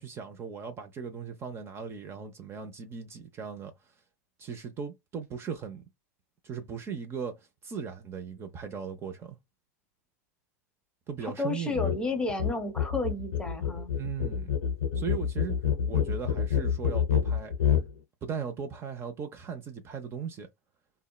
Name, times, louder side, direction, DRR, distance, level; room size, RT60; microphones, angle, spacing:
voice 1, 0.0-3.7 4.4-5.8 6.4-9.4 11.1-11.8 13.9-14.5 14.9-15.6 15.8-17.5 18.2-20.5, right 6 dB, 30° right, 0.6 m, -38 dB
voice 2, 11.2-13.9, left 2 dB, 10° left, 0.9 m, -32 dB
sound 1, 11.7-12.0 12.3-17.9, left 8 dB, 90° left, 0.6 m, -27 dB
2.7 x 2.1 x 2.3 m
hypercardioid pair, 100°, 8 cm